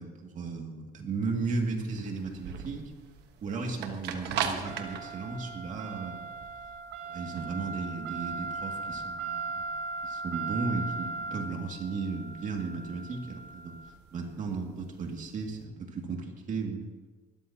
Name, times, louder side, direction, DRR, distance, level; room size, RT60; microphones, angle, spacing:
voice 1, 0.0-2.9 3.4-6.2 7.1-9.7 10.0-13.7 14.1-16.9, right 4 dB, 50° right, 2 dB, 2.4 m, -35 dB
sound 1, 1.4-15.5, right 5 dB, 80° right, 1.3 m, -38 dB
20.0 x 13.5 x 2.9 m, 1.3 s
cardioid pair, 110°, 17 cm